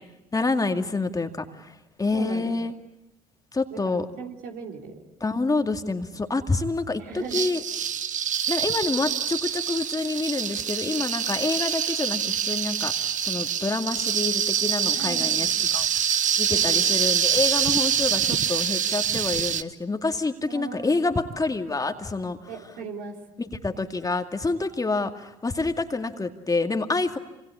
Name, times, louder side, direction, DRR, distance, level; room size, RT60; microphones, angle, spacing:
voice 1, 0.3-1.7 2.0-2.7 3.5-4.1 5.2-7.6 8.5-12.9 13.2-15.9 16.4-22.4 23.4-27.2, left 3 dB, 20° left, 6 dB, 2.2 m, -27 dB
voice 2, 2.1-2.5 3.7-5.0 7.0-7.4 14.9-15.5 16.5-16.9 20.5-21.0 22.5-23.1, right 5 dB, 65° right, 2 dB, 3.8 m, -38 dB
sound 1, 7.3-19.6, right 8 dB, 50° right, 1.2 m, -25 dB
27.0 x 26.0 x 8.3 m, 0.92 s
hypercardioid pair, 55°, 17 cm